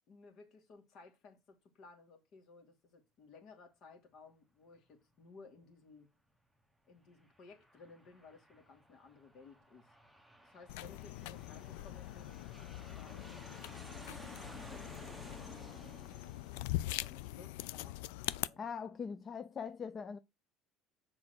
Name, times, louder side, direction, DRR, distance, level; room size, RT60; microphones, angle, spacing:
voice 1, 0.1-6.1 6.9-9.9 10.4-13.5 14.2-14.9 15.2-15.6 16.8-18.6, left 4 dB, 50° left, 2.7 m, -58 dB
Aircraft, 7.0-18.1, right 1 dB, ahead, 1.2 m, -56 dB
sound 1, 10.7-18.5, left 16 dB, 90° left, 0.4 m, -42 dB
voice 2, 18.6-20.2, left 6 dB, 30° left, 0.5 m, -41 dB
7.3 x 4.7 x 6.1 m
cardioid pair, 130°, 0 cm